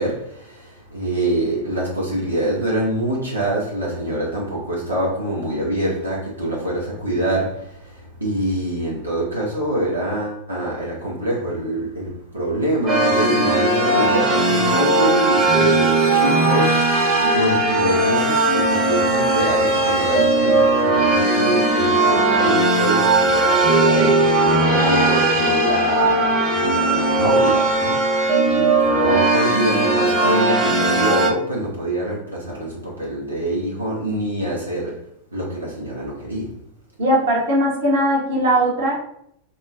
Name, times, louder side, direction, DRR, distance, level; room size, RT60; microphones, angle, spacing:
voice 1, 0.0-36.5, right 1 dB, 85° right, 1.0 m, -25 dB
sound 1, 12.9-31.3, right 2 dB, 30° right, 0.9 m, -18 dB
voice 2, 37.0-39.0, right 1 dB, 55° right, 1.1 m, -19 dB
5.2 x 2.2 x 2.4 m
figure-of-eight pair, 90°, 0 cm